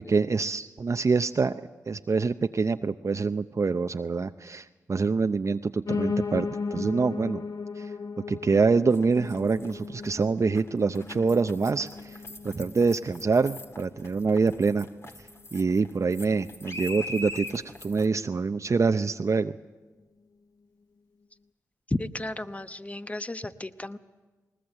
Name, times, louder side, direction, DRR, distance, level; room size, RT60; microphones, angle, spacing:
voice 1, 0.1-1.5 1.9-7.4 7.8-7.9 8.3-12.2 12.4-14.9 15.5-19.5, right 4 dB, 45° right, 8 dB, 0.6 m, -25 dB
Piano, 5.9-15.0 15.4-16.5 16.8-16.9 17.1-17.2 17.5-17.6 18.1-18.2, left 4 dB, 60° left, 0.9 m, -36 dB
sound 1, 8.9-18.1, left 1 dB, 40° left, 2.0 m, -42 dB
voice 2, 21.9-24.0, left 1 dB, 20° left, 11 dB, 1.1 m, -33 dB
20.0 x 20.0 x 8.0 m, 1.3 s
supercardioid pair, 40°, 7 cm